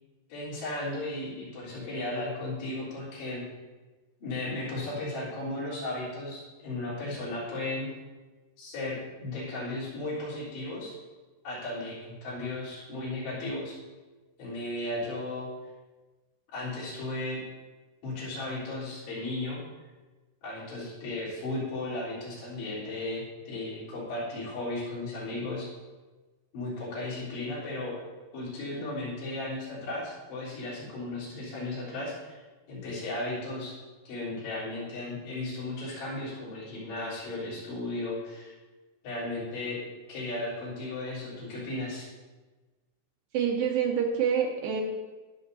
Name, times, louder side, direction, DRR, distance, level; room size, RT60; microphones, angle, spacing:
voice 1, 0.3-3.4 4.2-7.9 8.6-10.9 11.4-13.8 14.4-15.5 16.5-17.4 18.0-19.6 20.4-25.7 26.5-28.0 28.3-32.4 32.7-33.7 34.1-38.5 39.0-39.8 40.1-42.1, left 2 dB, 85° left, -9 dB, 5.8 m, -35 dB
voice 2, 43.3-44.8, right 7 dB, 75° right, 1 dB, 2.3 m, -26 dB
20.5 x 7.1 x 2.7 m, 1.3 s
omnidirectional pair, 4.7 m